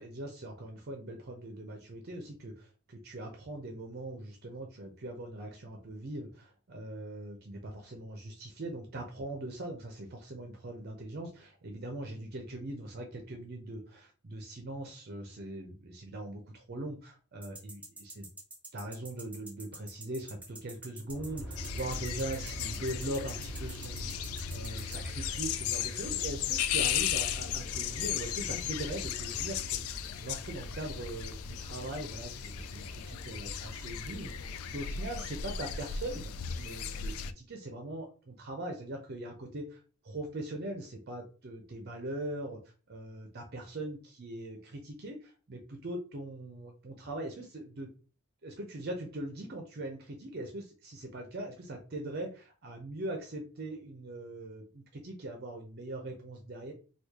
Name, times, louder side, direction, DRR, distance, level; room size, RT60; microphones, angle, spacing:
voice 1, 0.0-18.3 18.7-42.6 42.9-47.9 48.4-56.7, right 1 dB, 50° right, 3 dB, 0.6 m, -41 dB
sound 1, 17.4-25.0, right 2 dB, 5° right, 0.7 m, -47 dB
Aircraft, 21.1-37.3, right 1 dB, 30° left, 1.4 m, -45 dB
sound 2, 21.6-37.3, left 9 dB, 85° left, 0.3 m, -36 dB
3.1 x 2.4 x 3.5 m, 0.36 s
head